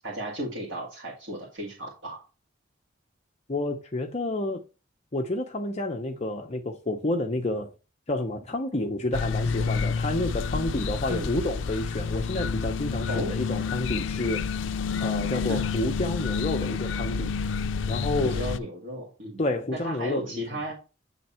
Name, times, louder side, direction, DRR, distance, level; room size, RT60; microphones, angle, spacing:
voice 1, 0.0-2.2 11.1-11.3 13.1-13.3 15.5-15.7 18.2-19.4 19.7-20.8, equal, 75° right, 2.0 m, -34 dB
voice 2, 3.5-4.6 5.1-7.7 8.1-14.6 15.0-17.4 17.9-18.4 19.4-20.3, left 1 dB, 35° left, 0.8 m, -29 dB
sound 1, 9.1-18.6, left 5 dB, 70° left, 0.4 m, -29 dB
9.2 x 3.5 x 4.3 m
head